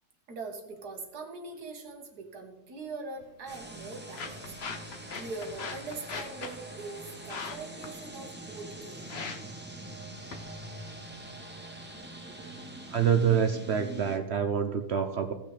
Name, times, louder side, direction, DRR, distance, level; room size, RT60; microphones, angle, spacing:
voice 1, 0.3-4.5 4.9-9.1, right 3 dB, 75° right, 3 dB, 2.0 m, -42 dB
sound 1, 3.2-13.2, left 5 dB, 50° left, 0.9 m, -44 dB
sound 2, 3.5-14.2, right 1 dB, 10° right, 0.6 m, -44 dB
voice 2, 12.9-15.3, right 7 dB, 60° right, 7 dB, 0.7 m, -26 dB
17.0 x 6.1 x 3.3 m, 1.0 s
omnidirectional pair, 1.7 m